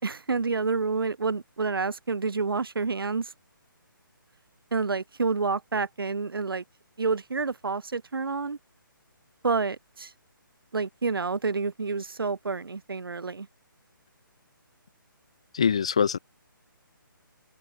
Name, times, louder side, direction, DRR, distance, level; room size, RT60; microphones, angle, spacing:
voice 1, 0.0-3.3 4.7-6.6 7.0-8.6 9.4-10.1 10.7-13.5, right 4 dB, 85° right, 2.4 m, -28 dB
voice 2, 15.5-16.2, left 7 dB, 15° left, 0.4 m, -23 dB
hypercardioid pair, 175°, 12 cm